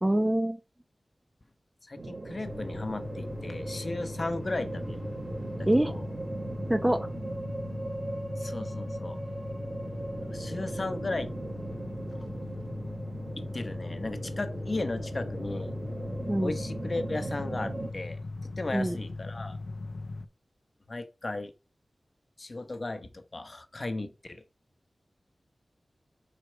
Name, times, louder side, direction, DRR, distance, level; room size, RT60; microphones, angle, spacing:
voice 1, 0.0-0.6 5.7-5.9 6.7-7.0 16.3-16.5 18.7-19.0, right 1 dB, 15° right, 0.7 m, -25 dB
voice 2, 1.8-6.1 8.4-9.2 10.2-11.3 13.4-15.7 16.4-19.6 20.9-21.5 22.4-24.4, left 2 dB, 45° left, 0.9 m, -36 dB
sound 1, 2.0-17.9, right 2 dB, 60° right, 0.9 m, -39 dB
sound 2, 2.4-20.3, left 2 dB, 80° left, 0.6 m, -39 dB
5.0 x 4.9 x 4.5 m
wide cardioid pair, 65°, 0 cm